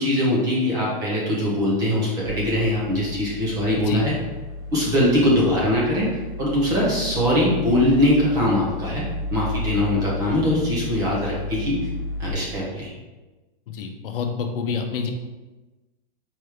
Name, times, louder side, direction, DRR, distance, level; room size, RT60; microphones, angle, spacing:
voice 1, 0.0-4.1 4.7-9.0 9.3-11.9 12.2-12.9, left 1 dB, 10° right, -5 dB, 0.7 m, -22 dB
sound 1, 2.2-12.3, left 2 dB, 70° right, 1.3 m, -32 dB
voice 2, 13.7-15.1, left 6 dB, 70° left, 5 dB, 0.7 m, -27 dB
4.5 x 3.2 x 3.4 m, 1.2 s
supercardioid pair, 170°, 29 cm